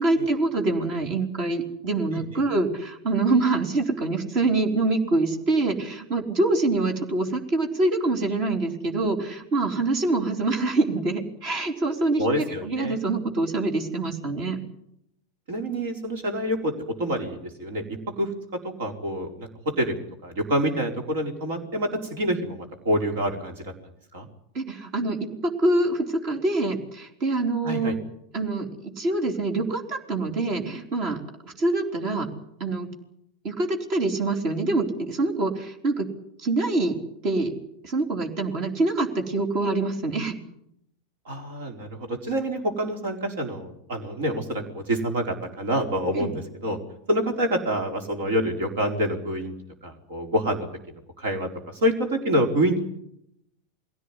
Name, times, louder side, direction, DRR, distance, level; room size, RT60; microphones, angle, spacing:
voice 1, 0.0-14.6 24.5-27.9 28.3-31.2 31.6-32.3 32.6-32.9 33.4-36.1 36.4-37.0 37.2-37.5 37.8-40.4 46.1-46.3, right 2 dB, 50° right, 4 dB, 3.9 m, -25 dB
voice 2, 12.2-13.0 15.5-17.8 18.2-18.3 18.6-20.0 20.2-23.7 24.1-24.3 27.6-27.9 41.3-46.8 47.1-49.5 49.8-50.7 51.2-52.8, equal, 70° right, 5 dB, 4.3 m, -27 dB
22.0 x 16.5 x 9.9 m, 0.77 s
hypercardioid pair, 90°, 0 cm